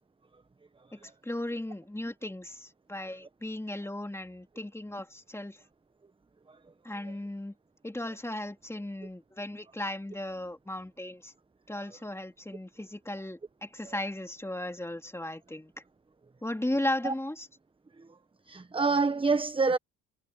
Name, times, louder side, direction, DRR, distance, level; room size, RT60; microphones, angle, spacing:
voice 1, 0.9-5.6 6.8-7.5 7.8-11.3 11.7-15.7 16.4-17.5, left 1 dB, 5° left, 3.1 m, -36 dB
voice 2, 18.5-19.8, right 4 dB, 15° right, 1.0 m, -27 dB
supercardioid pair, 75°, 37 cm